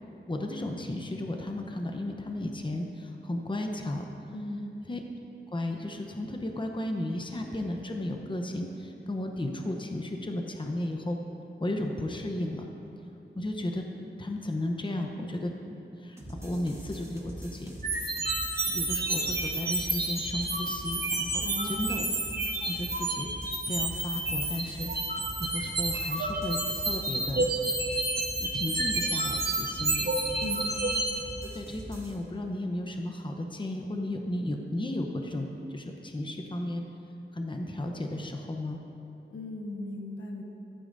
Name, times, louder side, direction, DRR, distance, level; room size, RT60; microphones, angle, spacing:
voice 1, 0.0-4.1 4.9-5.0 5.5-11.2 11.6-12.7 13.4-13.8 14.2-17.7 18.2-18.3 18.7-22.0 22.6-23.3 23.7-27.5 28.4-30.1 31.5-36.8 37.3-38.8, left 1 dB, 25° left, 3 dB, 0.8 m, -34 dB
voice 2, 4.3-4.8 21.4-22.0 30.4-30.7 39.3-40.4, left 1 dB, 85° left, 0 dB, 1.3 m, -37 dB
sound 1, 16.2-32.2, right 1 dB, 15° right, 1.5 m, -43 dB
sound 2, 17.8-31.1, right 2 dB, 55° right, 1.7 m, -30 dB
14.5 x 12.5 x 2.6 m, 3.0 s
wide cardioid pair, 95°, 19 cm